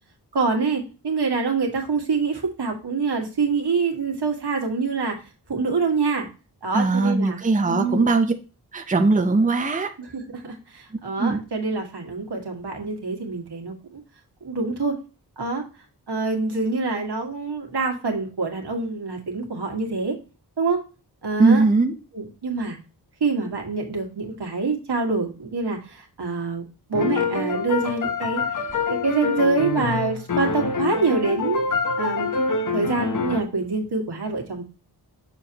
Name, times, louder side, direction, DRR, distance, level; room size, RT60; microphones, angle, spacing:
voice 1, 0.3-5.2 5.5-6.3 6.6-7.4 7.7-8.1 10.0-14.0 14.4-15.0 15.4-15.6 16.1-20.2 20.6-20.8 21.2-21.6 22.1-22.8 23.2-28.4 28.9-31.7 32.0-32.3 32.7-34.6, right 4 dB, 85° right, 1 dB, 1.8 m, -25 dB
voice 2, 6.7-8.3 8.7-9.9 11.2-11.4 21.4-21.9, right 3 dB, 20° right, 6 dB, 0.7 m, -19 dB
sound 1, 26.9-33.4, left 4 dB, 50° left, 0.9 m, -26 dB
7.0 x 6.6 x 2.9 m, 0.32 s
wide cardioid pair, 115°, 39 cm